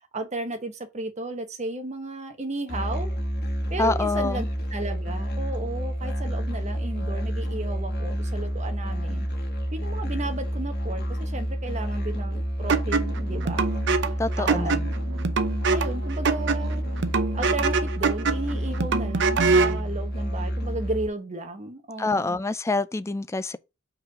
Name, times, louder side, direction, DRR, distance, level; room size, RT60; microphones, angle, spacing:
voice 1, 0.1-3.1 3.7-4.5 4.7-9.3 9.7-13.7 14.4-14.8 15.7-16.8 17.3-22.4, right 2 dB, 35° right, 1.1 m, -34 dB
Musical instrument, 2.7-21.1, equal, 55° left, 1.6 m, -29 dB
voice 2, 3.8-4.5 14.2-14.9 22.0-23.6, left 3 dB, 15° left, 0.3 m, -26 dB
sound 1, 12.7-19.8, right 4 dB, 60° right, 0.7 m, -25 dB
5.4 x 3.9 x 5.9 m
head